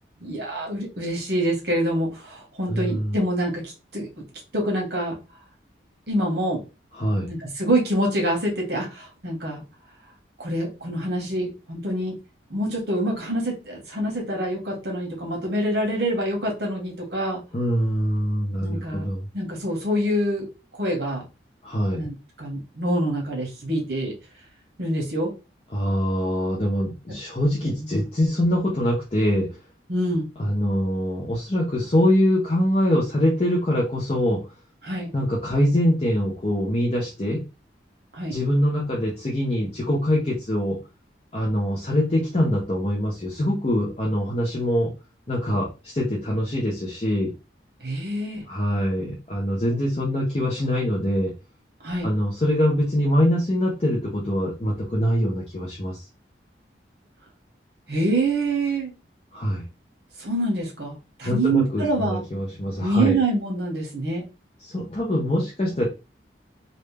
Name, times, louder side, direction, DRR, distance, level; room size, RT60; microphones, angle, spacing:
voice 1, 0.2-4.2 4.5-5.2 6.1-6.6 7.3-9.6 10.4-12.1 12.5-17.4 18.6-19.0 19.3-20.5 20.7-21.2 21.9-24.1 24.8-25.3 27.1-27.2 27.8-27.9 29.9-30.3 34.8-35.1 38.1-38.4 47.8-48.4 51.8-52.1 57.9-58.9 60.2-62.2 62.8-64.2, right 1 dB, 60° right, 0 dB, 1.5 m, -26 dB
voice 2, 2.7-3.2 6.9-7.3 17.5-19.2 21.6-22.1 25.7-29.6 30.4-34.5 35.1-37.4 38.3-40.8 41.3-44.9 45.3-47.3 48.5-51.3 52.0-56.0 59.3-59.6 61.2-63.2 64.6-65.9, equal, 35° left, -4 dB, 0.8 m, -23 dB
3.2 x 2.6 x 3.3 m, 0.29 s
head